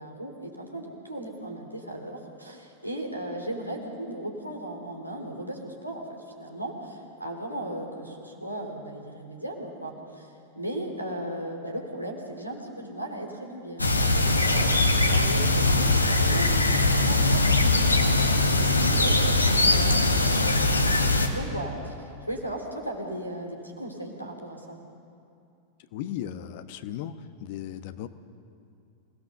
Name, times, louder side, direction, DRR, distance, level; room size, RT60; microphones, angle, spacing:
voice 1, 0.0-20.9 21.3-24.8, right 1 dB, 90° right, 0 dB, 3.3 m, -37 dB
sound 1, 13.8-21.3, left 2 dB, 80° left, 1.5 m, -21 dB
voice 2, 25.9-27.1 27.4-28.1, left 11 dB, 50° left, 11 dB, 1.0 m, -36 dB
27.0 x 18.0 x 6.8 m, 2.5 s
figure-of-eight pair, 90°, 0 cm